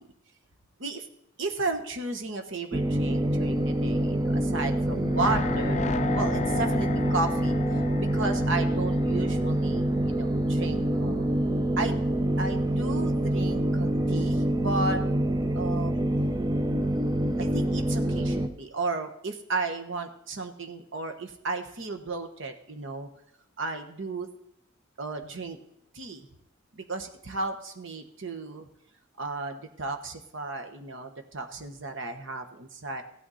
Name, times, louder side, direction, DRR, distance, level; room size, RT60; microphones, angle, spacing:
voice 1, 1.4-5.9 6.1-7.6 8.0-11.3 11.8-12.1 12.4-15.0 15.5-16.0 17.4-23.1 23.6-24.3 25.0-25.6 25.9-26.2 26.7-28.7 29.2-33.0, right 3 dB, 65° right, 6 dB, 1.2 m, -34 dB
sound 1, 2.7-18.5, right 1 dB, 20° right, 0.5 m, -26 dB
sound 2, 4.9-10.0 10.3-10.4, left 4 dB, 35° left, 0.4 m, -34 dB
15.5 x 9.1 x 4.2 m, 0.74 s
head